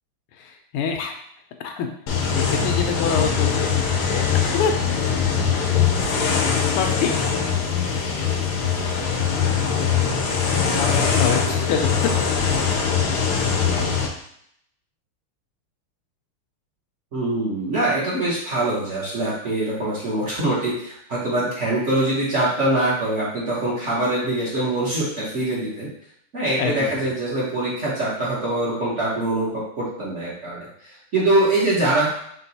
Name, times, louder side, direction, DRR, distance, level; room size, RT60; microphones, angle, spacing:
voice 1, 0.4-1.1 1.6-1.9 2.2-4.7 6.6-7.2 9.8-9.9 10.8-11.9 26.6-26.9, left 6 dB, 90° left, 4 dB, 1.5 m, -26 dB
sound 1, 2.1-14.1, left 6 dB, 65° left, 1.0 m, -22 dB
voice 2, 13.5-13.8 17.1-25.9 26.3-32.1, right 1 dB, 45° right, -7 dB, 1.0 m, -23 dB
4.6 x 2.3 x 4.0 m, 0.69 s
omnidirectional pair, 2.4 m